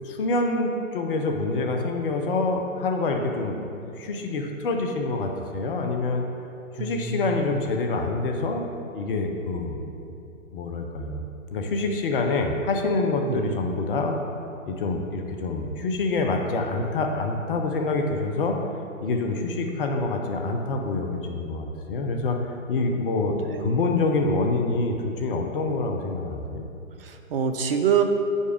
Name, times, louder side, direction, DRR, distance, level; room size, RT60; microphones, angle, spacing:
voice 1, 0.0-3.6 3.8-6.2 6.8-8.7 8.9-9.8 10.2-10.3 10.5-11.2 11.5-14.2 14.7-18.6 19.0-22.4 22.7-26.7, left 3 dB, 40° left, 3 dB, 0.8 m, -26 dB
voice 2, 6.7-7.4 13.3-13.6 23.5-23.8 27.0-28.0, right 7 dB, 45° right, 6 dB, 0.6 m, -26 dB
6.3 x 5.3 x 5.0 m, 2.7 s
figure-of-eight pair, 125°, 41 cm